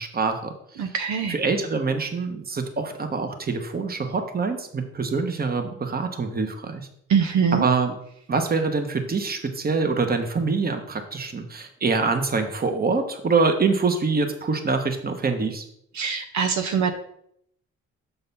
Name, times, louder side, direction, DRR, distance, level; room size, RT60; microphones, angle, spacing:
voice 1, 0.0-0.9 1.3-6.9 7.6-7.9 8.3-15.6, right 4 dB, 30° right, 6 dB, 1.1 m, -25 dB
voice 2, 0.8-1.4 7.1-7.7 15.9-16.9, right 6 dB, 70° right, 6 dB, 0.8 m, -23 dB
6.8 x 4.0 x 5.4 m, 0.72 s
cardioid pair, 90°, 30 cm